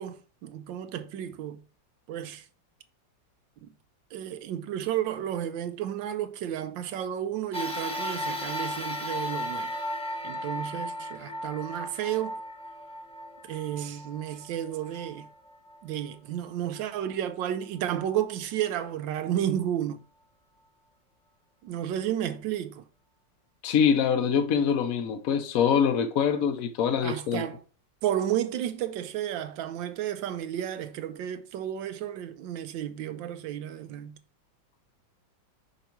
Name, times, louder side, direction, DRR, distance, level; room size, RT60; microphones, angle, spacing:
voice 1, 0.0-1.6 2.1-2.5 3.6-3.7 4.1-9.8 10.2-12.4 13.4-15.3 15.8-20.0 21.6-22.9 27.0-27.6 28.0-34.2, right 11 dB, 85° right, 1.4 m, -32 dB
sound 1, 7.5-16.1 16.7-16.8 18.0-18.1, equal, 10° left, 0.4 m, -36 dB
voice 2, 23.6-27.5, left 7 dB, 65° left, 0.9 m, -24 dB
5.4 x 4.9 x 4.4 m
omnidirectional pair, 2.0 m